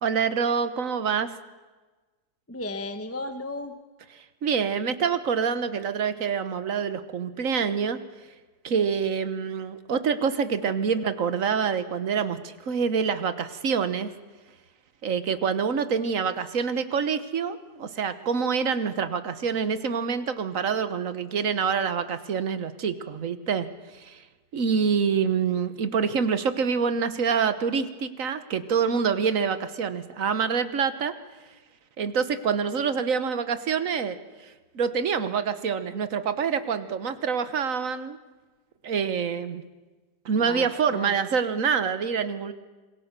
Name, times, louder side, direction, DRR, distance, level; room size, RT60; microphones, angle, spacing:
voice 1, 0.0-1.3 4.2-8.0 8.6-14.1 15.0-24.2 24.5-31.2 32.0-38.2 38.8-39.6 40.2-42.5, right 6 dB, 50° right, 12 dB, 1.4 m, -26 dB
voice 2, 2.5-3.8 40.4-41.1, left 2 dB, 10° left, 8 dB, 0.9 m, -35 dB
27.0 x 21.5 x 6.8 m, 1.3 s
omnidirectional pair, 1.9 m